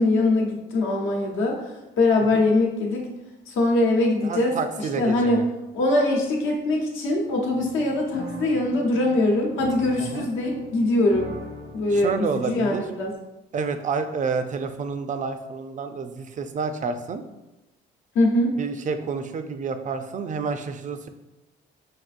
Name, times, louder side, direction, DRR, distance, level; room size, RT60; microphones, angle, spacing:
voice 1, 0.0-1.6 2.0-3.1 3.5-4.5 5.0-5.4 5.7-11.3 11.7-13.1 18.1-18.5, left 2 dB, 80° left, -1 dB, 1.0 m, -22 dB
voice 2, 4.2-5.4 10.0-10.3 11.9-12.9 13.5-17.2 18.6-21.1, right 5 dB, 40° right, 8 dB, 0.4 m, -29 dB
sound 1, 7.5-13.1, equal, 80° right, 1.1 m, -41 dB
5.9 x 2.5 x 2.5 m, 0.98 s
cardioid pair, 90°, 20 cm